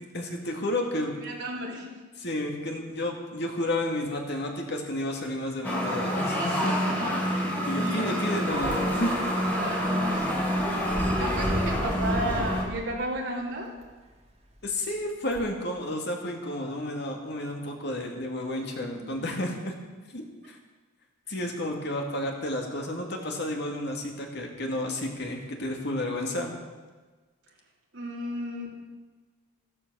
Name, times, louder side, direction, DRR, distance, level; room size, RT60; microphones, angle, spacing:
voice 1, 0.1-1.1 2.2-6.8 7.7-9.3 14.6-19.7 20.1-20.6 21.3-26.5, left 1 dB, 55° left, 1 dB, 2.4 m, -31 dB
voice 2, 1.2-2.0 6.8-7.4 7.7-8.2 9.6-10.3 10.8-13.7 18.9-19.3 27.9-28.8, right 1 dB, 60° right, -3 dB, 3.2 m, -34 dB
sound 1, 5.6-12.6, equal, 10° left, 2.6 m, -27 dB
sound 2, 8.5-13.0 13.8-13.9 15.3-15.4, equal, 30° right, 2.1 m, -34 dB
13.5 x 13.5 x 6.4 m, 1.3 s
head